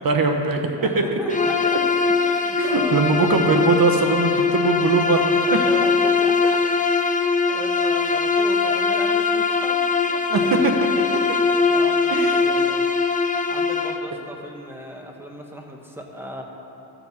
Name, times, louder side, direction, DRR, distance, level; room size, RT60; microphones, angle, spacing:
voice 1, 0.0-0.7 1.1-1.2 2.6-5.2 5.7-5.8 10.3-10.8 12.1-12.4, right 3 dB, 50° right, 4 dB, 1.1 m, -21 dB
voice 2, 0.8-1.8 2.1-3.3 5.4-6.6 7.5-10.2 11.7-12.9 13.5-16.4, equal, 5° right, 1 dB, 1.4 m, -36 dB
Bowed string instrument, 1.3-14.1, left 4 dB, 20° left, 0.6 m, -21 dB
13.5 x 7.1 x 4.3 m, 3.0 s
cardioid pair, 80°, 44 cm